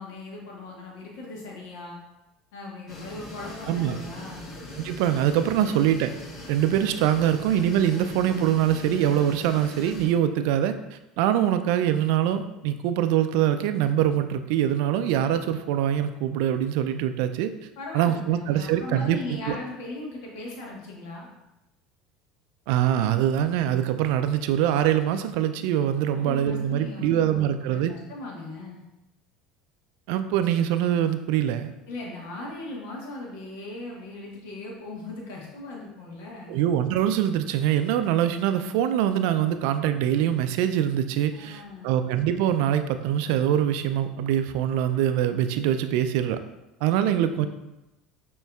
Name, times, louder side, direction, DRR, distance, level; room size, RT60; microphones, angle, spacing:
voice 1, 0.0-2.0 2.5-4.5 5.6-5.7 17.8-21.3 26.0-28.8 31.9-36.5 41.3-42.0 47.3-47.5, left 2 dB, 70° left, -2 dB, 1.3 m, -38 dB
sound 1, 2.9-10.1, left 1 dB, 50° left, 1.1 m, -41 dB
voice 2, 4.8-6.1 6.5-10.7 11.2-17.5 17.9-19.6 22.7-27.9 30.1-31.7 36.5-46.4 46.8-47.5, right 10 dB, 70° right, 10 dB, 0.3 m, -24 dB
6.4 x 3.0 x 2.3 m, 0.95 s
hypercardioid pair, 75°, 0 cm